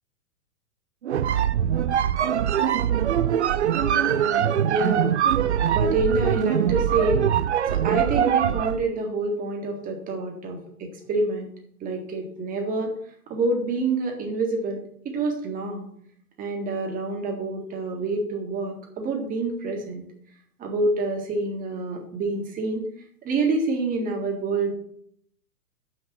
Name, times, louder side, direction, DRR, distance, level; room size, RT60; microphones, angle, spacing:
sound 1, 1.0-8.8, right 9 dB, 50° right, 0.5 m, -22 dB
voice 1, 3.8-5.3 5.7-7.3 7.7-11.5 11.8-12.9 13.3-15.9 16.4-20.0 20.6-22.9 23.2-24.7, right 3 dB, 20° right, 1 dB, 1.8 m, -27 dB
7.2 x 6.2 x 6.2 m, 0.65 s
figure-of-eight pair, 110°, 46 cm